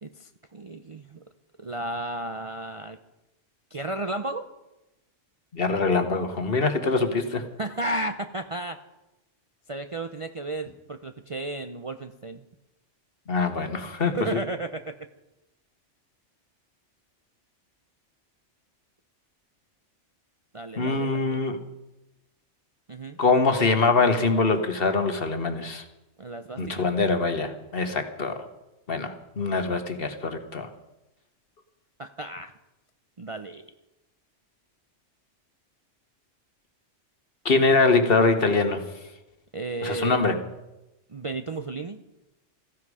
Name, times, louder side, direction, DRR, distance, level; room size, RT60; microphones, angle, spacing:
voice 1, 0.0-1.2 1.6-3.0 3.7-4.5 7.6-8.8 9.7-12.4 14.0-15.0 20.5-21.4 22.9-23.2 26.2-26.9 32.0-32.5 33.2-33.7 39.5-40.3 41.1-42.0, right 2 dB, 35° right, 6 dB, 0.5 m, -33 dB
voice 2, 5.5-7.4 13.3-14.4 20.8-21.6 23.2-25.8 26.6-28.4 28.9-30.7 37.4-38.8 39.8-40.4, left 3 dB, 50° left, 7 dB, 1.5 m, -23 dB
16.0 x 15.0 x 4.9 m, 0.97 s
omnidirectional pair, 1.2 m